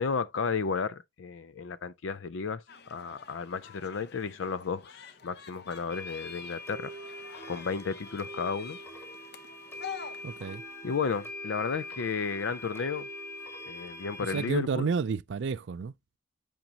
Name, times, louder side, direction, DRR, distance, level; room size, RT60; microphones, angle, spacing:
voice 1, 0.0-6.9 7.5-8.8 10.8-13.1 13.7-14.9, left 5 dB, 75° left, 0.5 m, -33 dB
sound 1, 2.7-10.6, left 7 dB, 50° left, 0.8 m, -48 dB
sound 2, 5.9-14.5, left 1 dB, 10° left, 1.6 m, -43 dB
voice 2, 10.2-10.6 14.3-15.9, right 5 dB, 60° right, 0.3 m, -30 dB
8.8 x 5.2 x 2.8 m
head